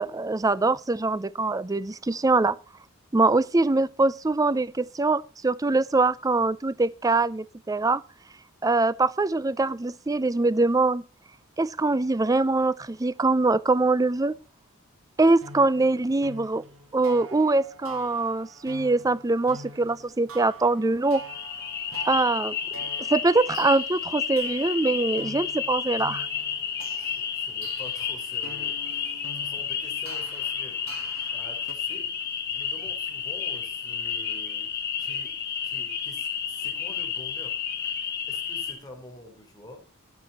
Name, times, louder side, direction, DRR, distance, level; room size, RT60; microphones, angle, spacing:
voice 1, 0.0-2.6 3.1-8.0 8.6-11.0 11.6-14.3 15.2-16.6 16.9-21.2 22.1-22.6 23.1-26.3, right 3 dB, 15° right, 0.4 m, -23 dB
sound 1, 15.4-31.7, right 2 dB, 75° right, 2.2 m, -45 dB
sound 2, 21.1-38.7, left 7 dB, 50° left, 2.2 m, -31 dB
voice 2, 26.9-30.8 31.3-32.1 32.5-34.7 35.0-35.3 35.6-37.5 38.3-39.8, left 1 dB, 20° left, 3.9 m, -46 dB
14.0 x 7.7 x 4.3 m
head